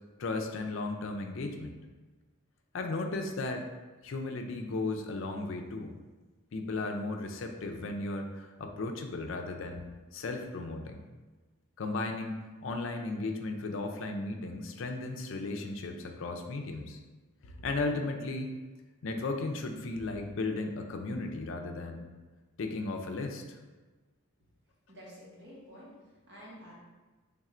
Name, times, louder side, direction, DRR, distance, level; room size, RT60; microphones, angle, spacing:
voice 1, 0.2-1.8 2.7-3.7 4.0-5.9 6.5-9.8 10.1-11.0 11.8-17.0 17.4-18.5 19.0-22.1 22.6-23.6, left 3 dB, 65° left, 4 dB, 0.4 m, -35 dB
voice 2, 24.9-26.7, equal, 55° right, -5 dB, 1.2 m, -50 dB
3.5 x 2.4 x 4.2 m, 1.3 s
head